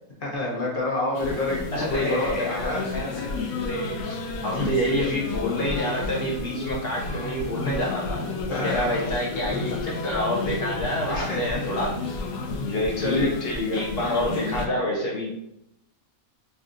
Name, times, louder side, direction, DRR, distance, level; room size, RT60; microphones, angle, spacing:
voice 1, 0.2-2.8 4.6-4.7 8.5-9.0 11.1-11.4 13.0-13.8, left 2 dB, 40° left, -3 dB, 1.1 m, -27 dB
sound 1, 1.1-14.7, left 3 dB, 75° left, 1.0 m, -32 dB
voice 2, 1.7-8.2 8.6-12.0 12.6-13.3 13.7-15.3, left 1 dB, 55° left, -3 dB, 0.7 m, -28 dB
5.5 x 2.3 x 2.5 m, 0.83 s
omnidirectional pair, 1.6 m